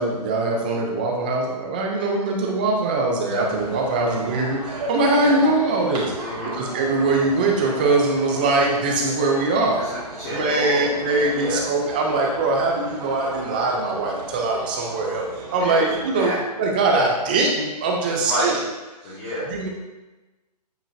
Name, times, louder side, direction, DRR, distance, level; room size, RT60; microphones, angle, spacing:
voice 1, 0.0-6.3 6.5-9.8 10.3-18.6 19.5-19.7, right 2 dB, 15° right, 0 dB, 0.5 m, -22 dB
sound 1, 3.4-16.2, right 2 dB, 70° right, 2.3 m, -36 dB
voice 2, 6.2-6.6 9.8-10.9 11.3-11.6 15.6-15.9 16.1-16.4 18.1-18.6 19.0-19.5, equal, 25° left, -11 dB, 2.1 m, -29 dB
8.9 x 5.4 x 2.7 m, 1.1 s
hypercardioid pair, 175°, 21 cm